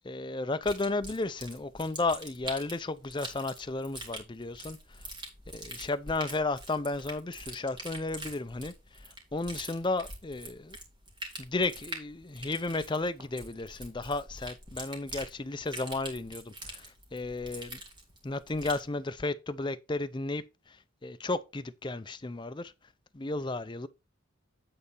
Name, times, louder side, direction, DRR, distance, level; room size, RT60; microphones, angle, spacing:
voice 1, 0.0-4.8 5.5-8.7 9.0-10.8 11.4-17.8 18.2-20.8 21.0-22.7 23.1-23.9, left 2 dB, 20° left, 0.5 m, -33 dB
sound 1, 0.6-18.9, right 1 dB, 20° right, 2.4 m, -44 dB
8.8 x 4.1 x 5.3 m
head